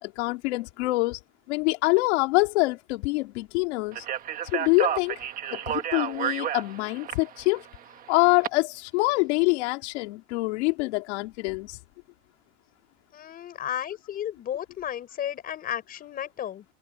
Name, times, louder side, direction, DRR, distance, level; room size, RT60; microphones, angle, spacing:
voice 1, 0.0-1.2 1.5-4.0 4.5-5.2 5.5-7.6 8.1-11.8, left 24 dB, 65° left, 3.1 m, -25 dB
Speech, 3.9-8.5, right 10 dB, 25° right, 1.5 m, -31 dB
voice 2, 13.1-16.6, left 10 dB, 25° left, 4.7 m, -33 dB
cardioid pair, 180°, 36 cm